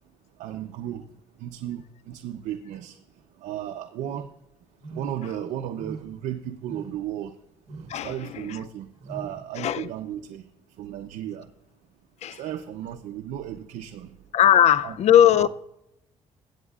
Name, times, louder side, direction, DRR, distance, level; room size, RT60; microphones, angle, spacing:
voice 1, 0.4-1.0 1.4-3.0 3.4-4.3 5.0-7.3 8.0-10.4 10.8-11.5 12.4-14.1 14.8-15.0 15.2-15.5, right 11 dB, 90° right, 0.6 m, -34 dB
sound 1, 4.8-5.3 5.7-6.2 6.6-7.1 7.7-8.0 9.0-9.4, right 3 dB, 65° right, 1.5 m, -41 dB
voice 2, 7.9-8.6 9.6-9.9 12.2-12.4 14.3-15.5, left 10 dB, 65° left, 0.5 m, -19 dB
22.0 x 8.1 x 2.4 m
cardioid pair, 105°, 12 cm